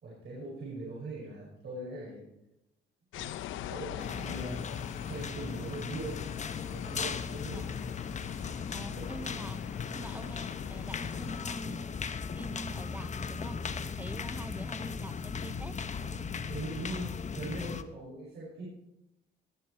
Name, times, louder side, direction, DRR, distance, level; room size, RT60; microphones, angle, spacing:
voice 1, 0.0-2.3 3.1-4.7 5.0-6.2 6.6-7.7 9.0-9.2 16.5-18.6, right 2 dB, 60° right, -6 dB, 5.6 m, -41 dB
sound 1, 3.1-11.4, left 12 dB, 80° left, 0.5 m, -43 dB
sound 2, 4.0-17.8, left 5 dB, 35° left, 0.8 m, -37 dB
voice 2, 8.7-9.6 9.9-11.9 12.4-13.6 14.0-15.7, right 2 dB, 10° right, 16 dB, 0.5 m, -45 dB
18.5 x 7.4 x 4.5 m, 0.87 s
cardioid pair, 90°, 20 cm